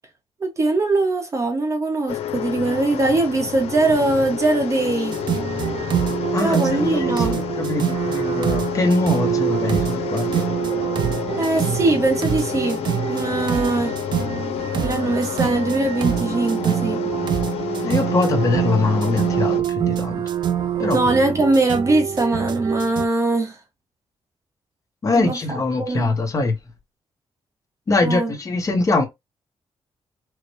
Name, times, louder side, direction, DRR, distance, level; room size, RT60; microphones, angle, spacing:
voice 1, 0.4-5.2 6.4-7.4 11.4-12.8 13.1-13.9 14.8-17.0 20.9-23.6 25.1-26.1 28.0-28.3, right 2 dB, 30° right, 0.9 m, -21 dB
sound 1, 2.1-19.6, left 9 dB, 85° left, 0.7 m, -29 dB
sound 2, 5.1-23.1, right 10 dB, 50° right, 0.4 m, -25 dB
voice 2, 6.3-10.5 17.8-20.2 20.8-21.0 25.0-26.5 27.9-29.1, left 3 dB, 35° left, 0.9 m, -22 dB
4.6 x 2.2 x 3.0 m
wide cardioid pair, 160°, 10 cm